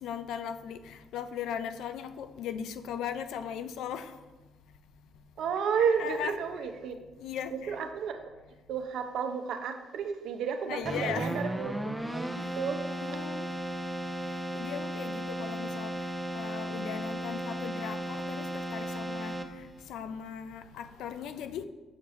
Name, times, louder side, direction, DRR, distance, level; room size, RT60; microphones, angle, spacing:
voice 1, 0.0-4.1 6.0-6.4 7.2-7.8 10.7-11.4 13.0-13.5 14.5-15.9 16.3-19.3 19.9-21.6, left 8 dB, 85° left, 0.3 m, -38 dB
voice 2, 5.4-6.9 7.7-8.2 8.7-11.7 12.1-12.9, right 6 dB, 80° right, 0.6 m, -31 dB
Keyboard (musical), 10.8-19.8, right 1 dB, 5° right, 0.6 m, -35 dB
7.3 x 4.7 x 3.0 m
supercardioid pair, 65°, 0 cm